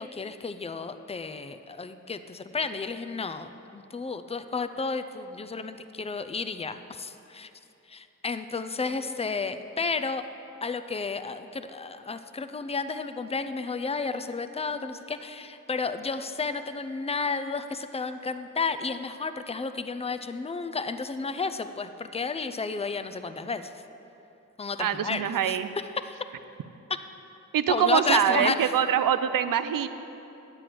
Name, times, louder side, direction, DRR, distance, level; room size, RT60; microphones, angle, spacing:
voice 1, 0.0-7.5 7.9-10.2 10.6-23.7 24.6-25.6 26.0-26.2 27.7-28.7, left 4 dB, 20° left, 10 dB, 0.4 m, -32 dB
voice 2, 24.8-25.7 27.5-29.9, right 9 dB, 85° right, 12 dB, 0.5 m, -24 dB
9.5 x 4.9 x 7.7 m, 2.9 s
cardioid pair, 50°, 32 cm